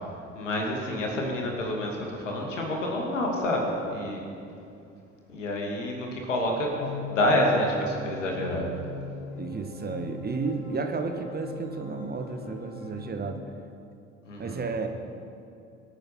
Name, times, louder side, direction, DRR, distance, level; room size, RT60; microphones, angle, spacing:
voice 1, 0.3-4.3 5.3-6.7 7.1-8.7 14.2-14.6, left 1 dB, 75° left, 0 dB, 2.4 m, -28 dB
sound 1, 6.8-13.1, left 4 dB, 45° left, 2.9 m, -39 dB
voice 2, 9.4-13.4 14.4-14.9, right 4 dB, 25° right, 5 dB, 1.5 m, -32 dB
23.0 x 8.9 x 5.9 m, 2.6 s
figure-of-eight pair, 55°, 37 cm